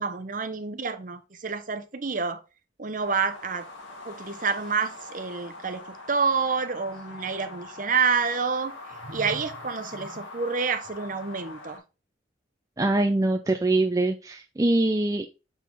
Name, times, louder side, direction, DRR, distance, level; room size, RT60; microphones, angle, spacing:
voice 1, 0.0-2.4 2.8-3.7 4.0-8.8 9.0-11.8, right 5 dB, 40° right, 0.8 m, -28 dB
sound 1, 3.0-11.8, left 2 dB, 80° left, 2.0 m, -43 dB
voice 2, 12.8-15.3, right 2 dB, 15° right, 0.4 m, -23 dB
7.3 x 4.1 x 3.8 m
head